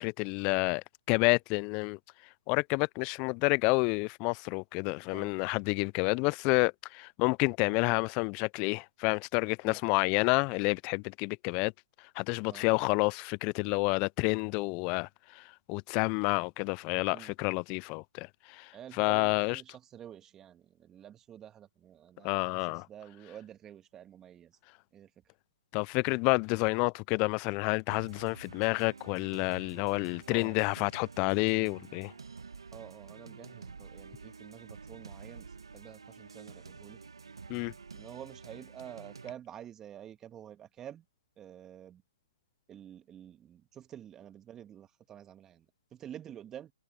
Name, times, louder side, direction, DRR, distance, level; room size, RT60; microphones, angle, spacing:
voice 1, 0.0-2.0 2.5-11.7 12.2-19.6 22.2-22.9 25.7-32.1 37.5-37.7, left 31 dB, 30° left, 0.5 m, -29 dB
voice 2, 18.7-24.5 24.9-25.1 30.3-30.6 32.7-37.0 37.9-41.0 41.4-42.0 42.7-45.7 45.9-46.7, right 10 dB, 20° right, 2.1 m, -49 dB
sound 1, 27.9-39.3, right 5 dB, 80° right, 1.6 m, -49 dB
figure-of-eight pair, 130°, 3 cm